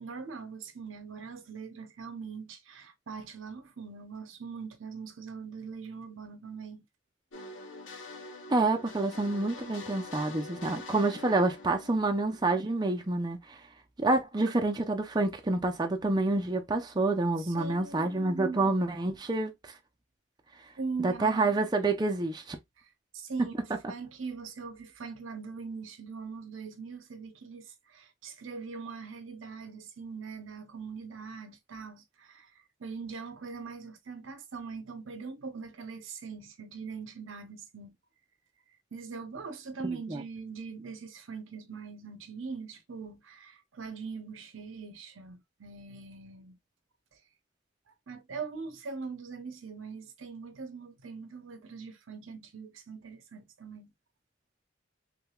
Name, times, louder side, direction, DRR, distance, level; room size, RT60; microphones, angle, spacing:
voice 1, 0.0-6.8 17.4-18.7 20.8-21.5 22.8-32.5 32.8-38.0 38.9-46.6 47.1-47.2 48.1-53.9, right 5 dB, 80° right, 0.7 m, -42 dB
sound 1, 7.3-13.1, left 2 dB, 70° left, 0.8 m, -45 dB
voice 2, 8.5-13.6 14.0-19.5 21.0-22.6 39.8-40.2, right 2 dB, 20° right, 0.6 m, -28 dB
3.3 x 3.3 x 2.3 m
head